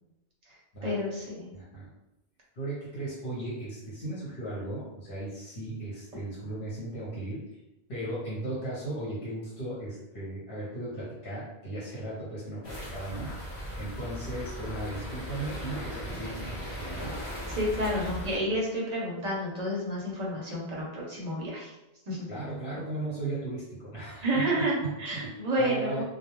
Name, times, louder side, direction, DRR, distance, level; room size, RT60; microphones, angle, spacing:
voice 1, 0.8-1.5 17.5-21.7 22.1-22.3 24.2-26.0, equal, 45° right, -4 dB, 0.7 m, -30 dB
voice 2, 1.5-1.9 2.5-7.4 7.9-13.3 13.8-17.2 22.3-25.2 25.6-26.0, right 2 dB, 65° left, -8 dB, 1.0 m, -36 dB
sound 1, 12.6-18.4, equal, 30° left, 0.6 m, -38 dB
2.2 x 2.1 x 3.0 m, 0.93 s
omnidirectional pair, 1.1 m